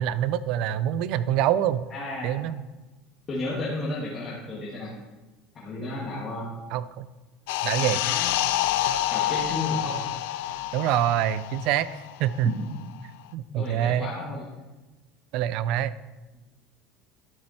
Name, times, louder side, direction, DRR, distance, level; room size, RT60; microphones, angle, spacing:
voice 1, 0.0-1.8 2.2-2.6 6.7-7.1 7.6-8.0 10.7-11.9 12.2-12.5 13.3-14.1 15.3-15.9, right 11 dB, 60° right, 16 dB, 0.5 m, -25 dB
voice 2, 1.9-2.5 3.3-4.9 5.5-6.5 7.8-8.5 9.1-10.0 12.4-12.6 13.5-14.5, left 2 dB, 30° left, -6 dB, 2.2 m, -33 dB
sound 1, 7.5-12.5 12.8-13.0, left 13 dB, 80° left, 0.4 m, -28 dB
12.0 x 7.7 x 4.3 m, 1.1 s
supercardioid pair, 135°, 0 cm